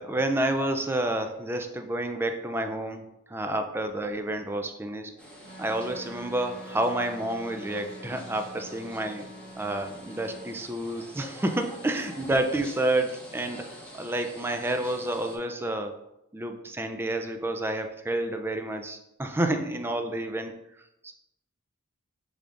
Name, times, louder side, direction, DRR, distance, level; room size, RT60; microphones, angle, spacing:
voice 1, 0.0-5.1 5.6-9.2 9.5-15.9 16.3-20.6 21.0-21.1, right 1 dB, 10° right, 6 dB, 0.3 m, -29 dB
sound 1, 5.2-15.4, equal, 5° left, 0.8 m, -46 dB
Wind instrument woodwind instrument, 5.4-10.6, right 2 dB, 50° right, 1.3 m, -46 dB
6.2 x 3.4 x 2.5 m, 0.86 s
head